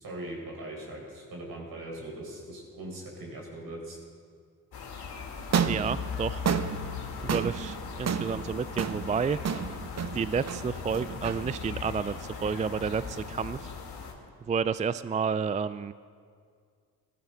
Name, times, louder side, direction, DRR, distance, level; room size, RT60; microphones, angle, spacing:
voice 1, 0.0-4.0, right 1 dB, 60° right, -1 dB, 4.8 m, -40 dB
sound 1, 4.7-14.1, left 5 dB, 70° left, 2.3 m, -39 dB
sound 2, 5.4-13.7, right 7 dB, 40° right, 0.8 m, -33 dB
voice 2, 5.6-6.4 7.2-9.4 10.1-13.7 14.5-15.9, right 6 dB, 20° right, 15 dB, 0.3 m, -30 dB
17.5 x 13.5 x 3.9 m, 2.1 s
supercardioid pair, 50°, 40 cm